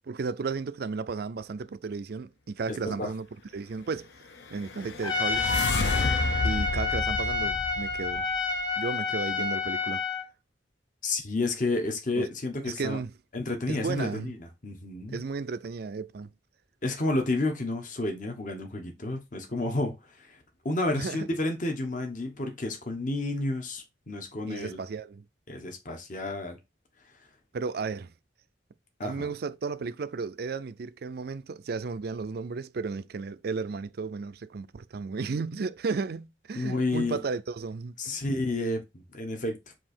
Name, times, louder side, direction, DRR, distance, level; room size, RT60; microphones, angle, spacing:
voice 1, 0.1-3.3 3.5-4.1 4.5-5.6 6.4-8.3 8.8-10.0 12.2-12.3 12.6-13.1 13.7-14.3 15.1-16.3 21.0-21.3 24.5-25.2 27.5-28.1 29.0-38.2, right 4 dB, 60° right, 0.4 m, -34 dB
voice 2, 2.7-3.1 11.0-13.0 13.3-15.2 16.8-20.4 20.6-24.8 25.5-26.6 29.0-29.3 36.5-37.2 38.0-39.5, left 2 dB, 45° left, 1.2 m, -31 dB
sound 1, 4.5-8.6, left 3 dB, 70° left, 0.7 m, -31 dB
Trumpet, 5.0-10.3, left 4 dB, 25° left, 1.1 m, -29 dB
7.6 x 2.8 x 4.4 m
head